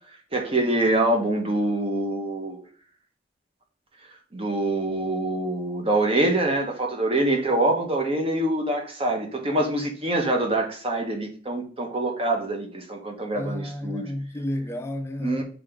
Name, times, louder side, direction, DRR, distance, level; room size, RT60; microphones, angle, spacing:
voice 1, 0.3-2.6 4.3-14.1 15.2-15.4, right 1 dB, 35° right, 1.5 m, -25 dB
voice 2, 13.3-15.4, left 1 dB, 15° left, 0.7 m, -31 dB
6.2 x 4.6 x 3.8 m
head